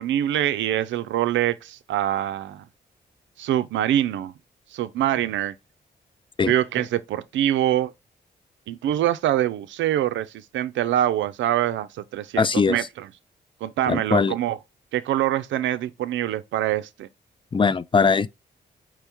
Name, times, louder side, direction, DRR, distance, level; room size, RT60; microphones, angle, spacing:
voice 1, 0.0-2.6 3.4-4.3 4.7-5.5 6.4-7.9 8.7-13.1 13.6-14.6 14.9-17.1, right 12 dB, 75° right, 0.5 m, -24 dB
voice 2, 12.4-12.8 13.9-14.3 17.5-18.4, left 5 dB, 25° left, 0.4 m, -20 dB
4.7 x 3.0 x 3.4 m
supercardioid pair, 45°, 20 cm